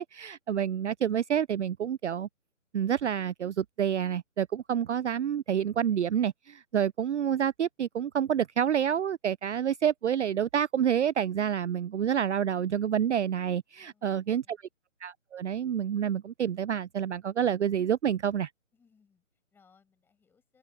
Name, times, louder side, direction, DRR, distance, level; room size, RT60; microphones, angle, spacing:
voice 1, 0.0-2.3 2.7-14.6 15.0-18.5, right 9 dB, 60° right, 0.5 m, -28 dB
voice 2, 13.8-14.6 18.7-20.6, left 5 dB, 5° left, 5.8 m, -67 dB
hypercardioid pair, 160°, 40 cm